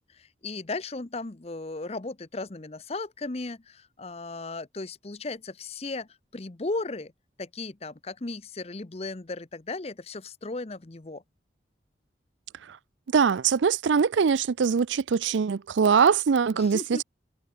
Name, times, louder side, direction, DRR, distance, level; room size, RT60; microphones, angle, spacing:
voice 1, 0.0-7.1 7.4-11.2 16.5-17.0, left 3 dB, 35° left, 0.8 m, -36 dB
voice 2, 13.1-17.0, right 6 dB, 85° right, 0.4 m, -22 dB
head